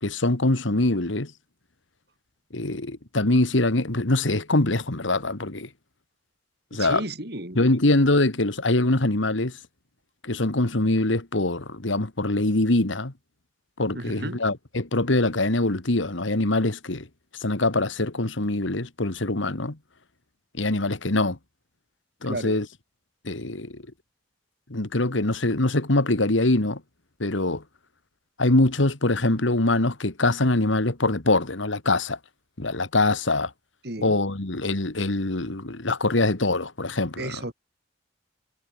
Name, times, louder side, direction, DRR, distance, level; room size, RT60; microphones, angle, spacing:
voice 1, 0.0-1.3 2.5-5.7 6.7-7.0 7.6-9.5 10.2-13.1 13.8-17.1 17.4-19.8 20.6-21.4 22.2-22.7 23.2-23.8 24.7-26.8 27.2-27.6 28.4-32.2 32.6-33.5 34.0-37.4, left 2 dB, 80° left, 2.0 m, -23 dB
voice 2, 6.7-7.7 13.9-14.4 22.2-22.6 33.8-34.2 37.2-37.5, right 1 dB, 55° right, 5.4 m, -33 dB
head